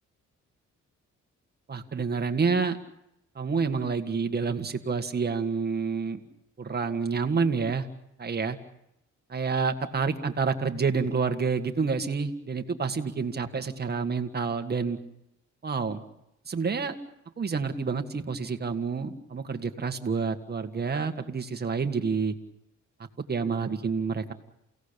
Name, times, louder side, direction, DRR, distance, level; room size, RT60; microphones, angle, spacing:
voice 1, 1.7-2.8 3.4-6.2 6.6-7.9 8.2-8.6 9.3-15.0 15.6-16.0 16.5-17.0 17.4-22.4 23.3-24.3, right 5 dB, 35° right, 6 dB, 1.8 m, -28 dB
29.0 x 17.0 x 6.9 m, 0.82 s
cardioid pair, 105°, 30 cm